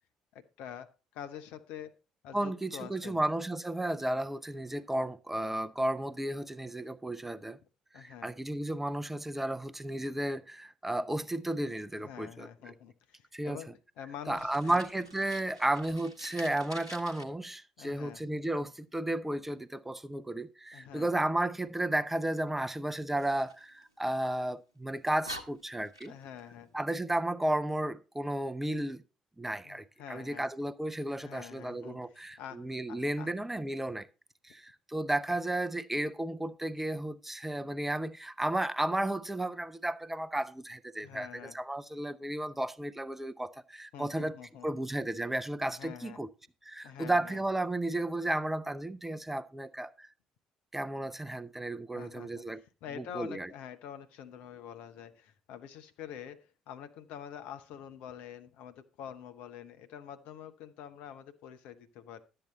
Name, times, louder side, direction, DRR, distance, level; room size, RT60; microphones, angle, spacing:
voice 1, 0.3-2.0 2.2-3.2 7.9-8.3 12.0-14.8 17.8-18.2 20.7-21.2 26.1-26.8 29.6-30.5 31.2-33.3 41.0-41.6 43.9-44.8 45.6-46.2 46.8-47.4 51.9-52.5 52.8-62.2, left 9 dB, 60° left, 0.8 m, -46 dB
voice 2, 2.3-7.6 7.9-12.7 13.3-13.6 14.3-26.1 26.7-29.0 29.4-34.1 34.4-44.4 44.6-46.3 46.6-50.1 50.7-52.6 53.0-53.5, right 1 dB, 10° right, 0.6 m, -33 dB
Fire, 14.3-17.2 23.2-24.4 24.9-25.0 25.2-26.4, equal, 90° right, 0.8 m, -47 dB
12.0 x 7.8 x 4.0 m
figure-of-eight pair, 50°, 3 cm